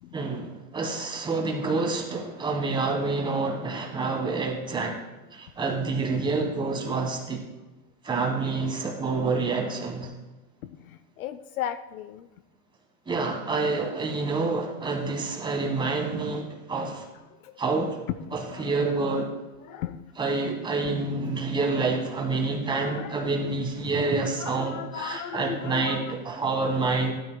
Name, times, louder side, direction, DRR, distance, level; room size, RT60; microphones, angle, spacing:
voice 1, 0.1-5.0 5.3-7.5 8.0-10.1 13.0-17.1 17.6-18.0 18.3-19.3 20.2-27.1, right 3 dB, 10° right, 1 dB, 1.3 m, -28 dB
voice 2, 10.6-12.3 17.4-17.5 18.3-18.7 19.7-20.0 22.8-23.3 24.4-26.0, left 10 dB, 60° left, 12 dB, 0.7 m, -36 dB
15.5 x 12.5 x 2.2 m, 1.1 s
supercardioid pair, 160°, 49 cm